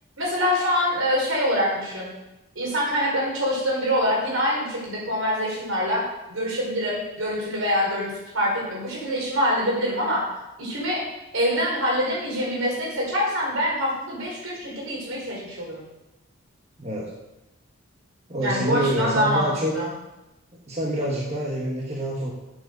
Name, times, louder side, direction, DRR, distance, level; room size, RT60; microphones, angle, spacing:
voice 1, 0.2-2.1 2.5-6.0 6.3-10.2 10.6-11.0 11.3-15.8 18.4-19.9, equal, 75° right, -3 dB, 4.9 m, -25 dB
voice 2, 16.8-17.1 18.3-19.8 20.5-22.3, right 1 dB, 30° right, -3 dB, 1.6 m, -26 dB
8.5 x 8.1 x 6.9 m, 0.98 s
head